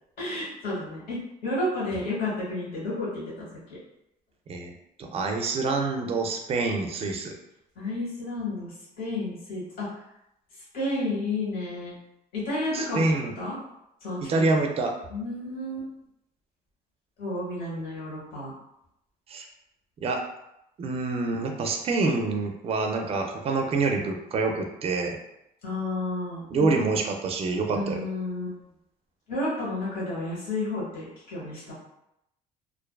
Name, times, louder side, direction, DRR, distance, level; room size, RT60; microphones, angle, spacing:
voice 1, 0.2-3.8 7.8-9.9 10.7-12.0 12.3-13.6 14.0-14.4 15.1-15.9 17.2-18.5 25.6-26.7 27.7-28.6 29.3-31.7, left 2 dB, 60° left, -7 dB, 1.2 m, -31 dB
voice 2, 5.0-7.3 12.7-13.3 14.2-14.9 19.3-19.5 20.0-20.2 20.8-25.2 26.5-28.0, right 3 dB, 35° right, 3 dB, 0.4 m, -26 dB
2.5 x 2.2 x 2.3 m, 0.82 s
cardioid pair, 110°, 17 cm